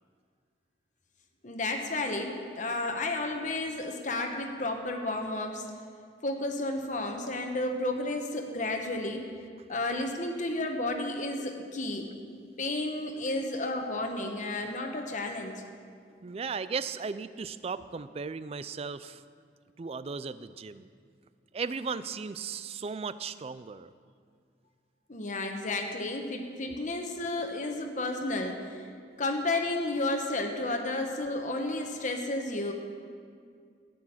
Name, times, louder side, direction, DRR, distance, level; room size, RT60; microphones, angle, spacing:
voice 1, 1.4-5.7 6.2-9.3 9.7-12.1 12.6-15.6 25.1-28.8 29.2-32.7, left 2 dB, 45° left, 3 dB, 1.1 m, -32 dB
voice 2, 16.2-19.2 19.8-20.9 21.5-23.9, right 5 dB, 35° right, 15 dB, 0.4 m, -36 dB
14.0 x 6.2 x 9.0 m, 2.1 s
head